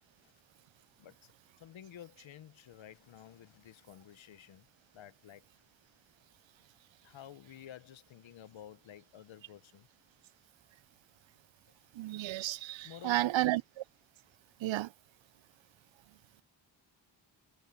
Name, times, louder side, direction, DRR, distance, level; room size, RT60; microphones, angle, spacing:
voice 1, 1.0-4.7 4.9-5.4 7.0-9.9 12.8-13.5, left 10 dB, 85° left, 1.2 m, -52 dB
voice 2, 11.9-13.6 14.6-14.9, right 16 dB, 80° right, 0.5 m, -32 dB
cardioid pair, 55°, 45 cm